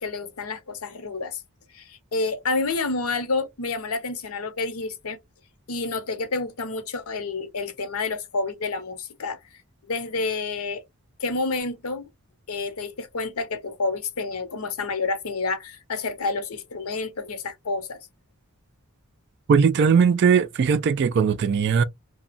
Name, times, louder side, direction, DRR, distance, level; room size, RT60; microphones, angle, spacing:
voice 1, 0.0-1.4 1.7-5.2 5.7-9.4 9.9-10.8 11.2-12.1 12.5-18.0, left 3 dB, 85° left, 0.8 m, -29 dB
voice 2, 19.5-21.8, right 6 dB, 50° right, 0.3 m, -19 dB
2.9 x 2.2 x 2.5 m
head